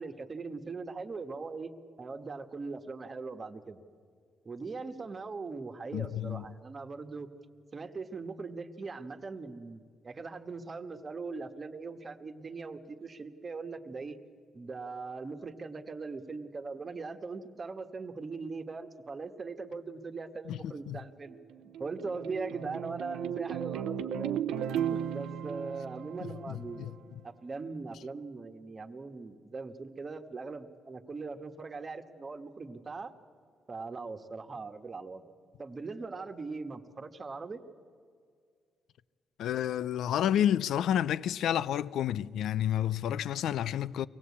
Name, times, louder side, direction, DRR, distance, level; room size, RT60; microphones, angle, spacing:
voice 1, 0.0-1.7 2.0-3.8 4.4-7.3 7.7-14.2 14.5-21.4 21.8-27.0 27.2-33.1 33.7-35.3 35.6-37.6, right 4 dB, 35° right, 1.4 m, -40 dB
voice 2, 5.9-6.4 20.5-21.0 26.5-26.9 39.4-44.1, left 10 dB, 75° left, 0.5 m, -30 dB
sound 1, 21.3-26.9, right 9 dB, 85° right, 0.6 m, -35 dB
23.5 x 17.0 x 8.5 m
cardioid pair, 90°, 0 cm